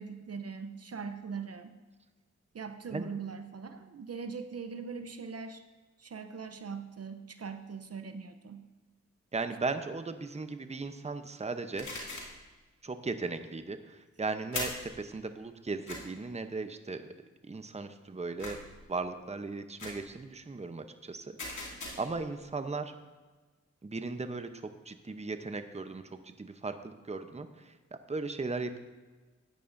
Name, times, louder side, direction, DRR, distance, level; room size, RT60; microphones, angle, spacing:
voice 1, 0.0-1.7 2.5-5.6 6.0-8.7, right 5 dB, 55° right, 8 dB, 0.7 m, -41 dB
voice 2, 9.3-11.9 12.8-17.1 17.4-18.6 18.9-22.9 23.8-27.7 28.1-28.8, right 3 dB, 20° right, 9 dB, 0.7 m, -37 dB
sound 1, 11.8-12.4 14.5-14.9 15.9-16.0 18.4-18.8 19.8-20.1 21.4-22.2, left 2 dB, 80° left, 2.3 m, -39 dB
14.0 x 9.4 x 2.6 m, 1.3 s
cardioid pair, 45°, 29 cm